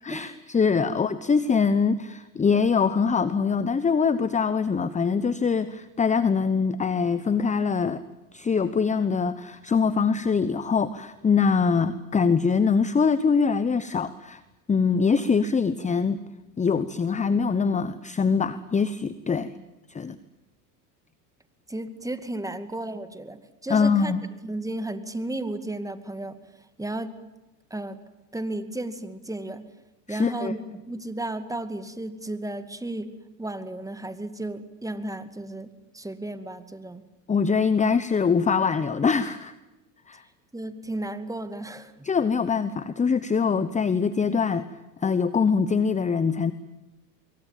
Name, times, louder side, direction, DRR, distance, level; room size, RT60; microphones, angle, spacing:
voice 1, 0.0-8.0 8.3-14.4 14.7-16.2 16.6-19.5 19.9-20.2 23.7-24.2 30.1-30.5 37.3-39.5 40.1-40.2 42.0-44.7 45.0-46.5, left 5 dB, 15° left, 15 dB, 1.0 m, -23 dB
voice 2, 21.7-24.1 24.4-26.4 26.8-27.1 27.7-28.0 28.3-29.7 30.1-33.1 33.4-37.0 40.5-42.1, right 1 dB, 5° right, 11 dB, 2.3 m, -34 dB
25.0 x 23.0 x 9.2 m, 1.0 s
supercardioid pair, 100°, 48 cm